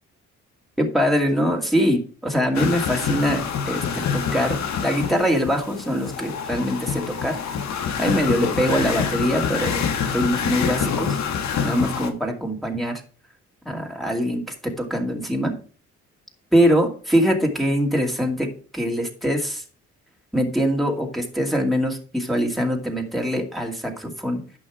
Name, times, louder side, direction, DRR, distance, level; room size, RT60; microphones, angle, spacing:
voice 1, 0.8-3.8 4.1-4.6 4.8-7.4 8.0-11.2 11.6-12.9 13.7-15.5 16.5-19.6 20.3-24.4, equal, ahead, 0 dB, 2.3 m, -23 dB
sound 1, 2.5-12.1, left 6 dB, 65° left, 1.5 m, -26 dB
11.0 x 5.5 x 4.8 m, 0.39 s
cardioid pair, 90°, 30 cm